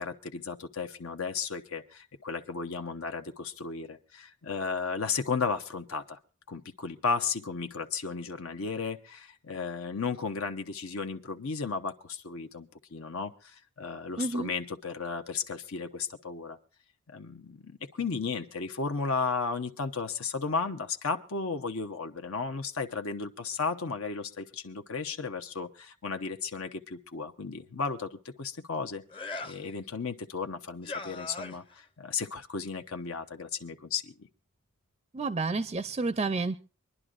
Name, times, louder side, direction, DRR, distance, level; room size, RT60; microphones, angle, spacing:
voice 1, 0.0-6.2 6.5-16.6 17.1-29.0 29.4-34.1, left 5 dB, 70° left, 7 dB, 0.9 m, -34 dB
voice 2, 14.2-14.5 35.1-36.6, right 3 dB, 30° right, 11 dB, 0.5 m, -30 dB
sound 1, 29.1-29.7 30.8-31.8, left 3 dB, 25° left, 0.7 m, -39 dB
24.5 x 11.0 x 2.5 m, 0.34 s
head